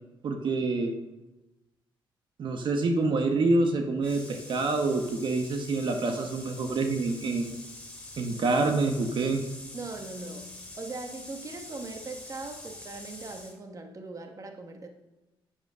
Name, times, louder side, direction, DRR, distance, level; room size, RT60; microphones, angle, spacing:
voice 1, 0.2-0.9 2.4-7.6 8.2-9.4, right 3 dB, 65° right, 4 dB, 1.3 m, -27 dB
sound 1, 4.0-13.6, left 2 dB, 10° left, 2.8 m, -45 dB
voice 2, 9.7-14.9, right 3 dB, 40° right, 5 dB, 1.4 m, -40 dB
9.0 x 8.4 x 6.2 m, 1.0 s
cardioid pair, 90°, 9 cm